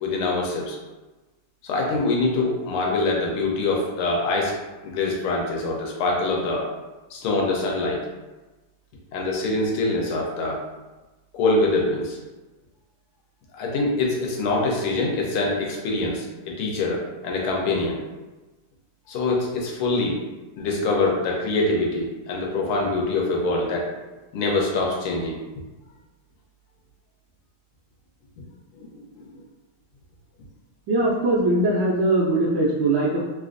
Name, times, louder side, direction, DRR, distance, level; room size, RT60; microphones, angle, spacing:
voice 1, 0.0-0.8 1.6-6.6 7.1-8.0 9.1-10.6 11.3-12.2 13.5-18.0 19.1-20.2 20.6-23.9 24.3-25.4 28.8-28.9 29.2-29.3, left 2 dB, 85° left, -1 dB, 1.6 m, -24 dB
voice 2, 30.9-33.2, right 2 dB, 70° right, -5 dB, 1.1 m, -21 dB
3.7 x 2.4 x 2.5 m, 1.1 s
omnidirectional pair, 2.3 m